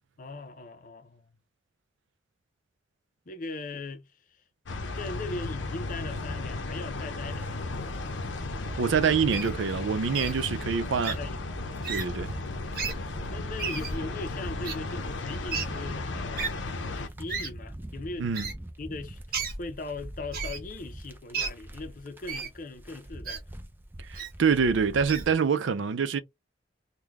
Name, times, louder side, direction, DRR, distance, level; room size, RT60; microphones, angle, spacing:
voice 1, 0.2-1.2 3.3-4.4 4.9-8.1 10.2-10.4 10.8-11.5 13.3-16.6 16.9-18.3 18.8-23.4, left 3 dB, 45° left, 0.5 m, -40 dB
sound 1, 4.6-17.1, left 3 dB, 85° left, 0.7 m, -35 dB
sound 2, 7.3-25.3, right 1 dB, 10° right, 0.4 m, -43 dB
voice 2, 8.8-11.2 11.9-12.3 18.2-18.5 24.0-26.2, right 6 dB, 85° right, 0.5 m, -26 dB
Wild animals, 9.3-9.5 10.1-10.3 11.0-11.2 11.8-12.1 12.7-12.9 13.6-13.9 14.6-14.7 15.5-15.6 16.4-16.5 17.3-17.5 18.3-18.5 19.3-19.6 20.3-20.6 21.3-21.5 22.3-22.5 23.2-23.4 24.1-24.3 25.1-25.2, right 5 dB, 50° right, 0.9 m, -32 dB
3.7 x 2.2 x 2.9 m
head